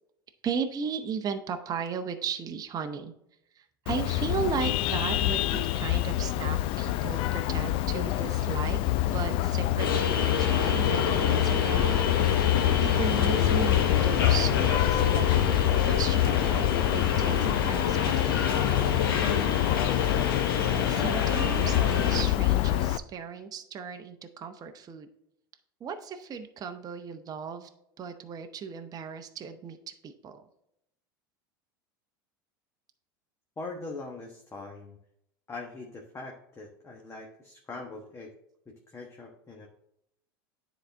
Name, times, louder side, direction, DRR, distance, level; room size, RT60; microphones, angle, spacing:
voice 1, 0.4-3.1 3.6-8.8 9.1-18.6 20.9-25.1 25.8-27.7 28.0-29.8 30.0-30.4, right 6 dB, 35° right, 6 dB, 0.8 m, -36 dB
Vehicle horn car horn honking, 3.9-23.0, left 14 dB, 50° left, 0.4 m, -26 dB
sound 1, 9.8-22.2, left 5 dB, 80° left, 1.0 m, -29 dB
voice 2, 33.6-35.0 35.5-38.3 38.7-39.7, left 3 dB, 25° left, 0 dB, 1.2 m, -42 dB
9.8 x 4.1 x 3.4 m, 0.77 s
hypercardioid pair, 90°, 12 cm